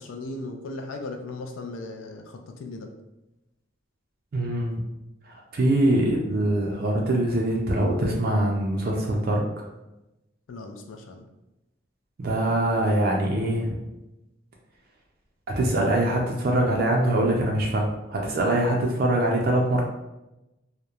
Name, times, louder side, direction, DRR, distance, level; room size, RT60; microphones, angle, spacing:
voice 1, 0.0-2.9 10.5-11.3, left 2 dB, 80° left, 4 dB, 0.4 m, -37 dB
voice 2, 4.3-4.8 5.2-9.6 12.2-13.8 15.5-19.8, right 1 dB, 50° right, -1 dB, 0.3 m, -23 dB
2.9 x 2.0 x 2.3 m, 0.96 s
head